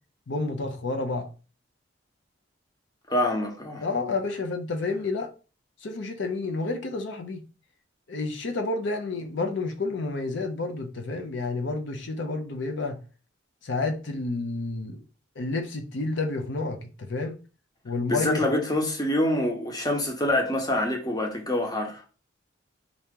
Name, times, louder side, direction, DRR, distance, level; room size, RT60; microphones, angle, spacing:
voice 1, 0.3-1.3 3.8-5.3 5.8-7.4 8.1-13.0 13.6-15.0 15.4-17.4 17.8-18.5, left 3 dB, 75° left, 0.6 m, -30 dB
voice 2, 3.1-3.8 18.1-22.0, left 1 dB, 20° left, 0.9 m, -26 dB
3.8 x 2.9 x 3.6 m
head